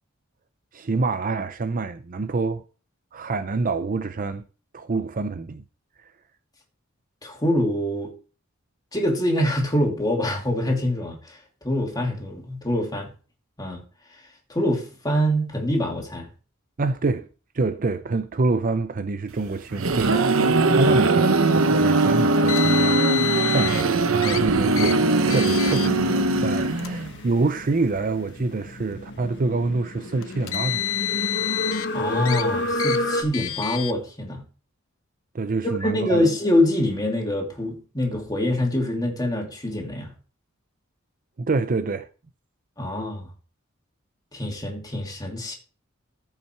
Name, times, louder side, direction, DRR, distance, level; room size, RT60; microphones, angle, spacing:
voice 1, 0.7-2.6 3.1-4.4 4.7-5.6 16.8-17.3 17.5-30.8 35.3-36.2 41.4-42.1, right 3 dB, 40° right, 0.5 m, -26 dB
voice 2, 7.2-8.1 8.9-11.4 11.6-13.1 13.6-13.8 14.5-16.3 20.8-21.0 31.9-34.4 35.8-40.1 42.8-43.3 44.3-45.5, left 1 dB, 20° left, 2.7 m, -25 dB
sound 1, 19.5-27.2, right 2 dB, 85° right, 1.0 m, -20 dB
Car, 22.5-23.8 24.2-24.4 24.8-24.9 25.3-25.9 26.7-26.9 27.8-27.9 30.2-31.9 32.3-32.4 32.8-33.0 33.3-33.9, left 12 dB, 80° left, 0.8 m, -28 dB
sound 2, 22.8-33.2, left 1 dB, 60° left, 1.4 m, -31 dB
14.0 x 5.7 x 4.5 m
head